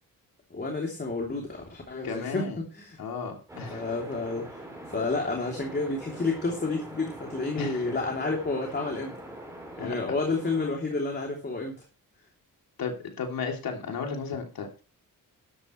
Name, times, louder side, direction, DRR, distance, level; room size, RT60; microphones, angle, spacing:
voice 1, 0.5-3.0 3.7-4.6 4.9-9.1 9.8-11.7, left 3 dB, 30° left, 1 dB, 3.0 m, -30 dB
voice 2, 2.0-2.6 3.0-3.8 7.6-7.9 9.8-9.9 12.8-14.8, left 5 dB, 90° left, 2 dB, 3.0 m, -34 dB
sound 1, 3.5-10.7, right 1 dB, 10° right, 5.7 m, -43 dB
12.5 x 12.0 x 3.2 m, 0.35 s
wide cardioid pair, 125°, 34 cm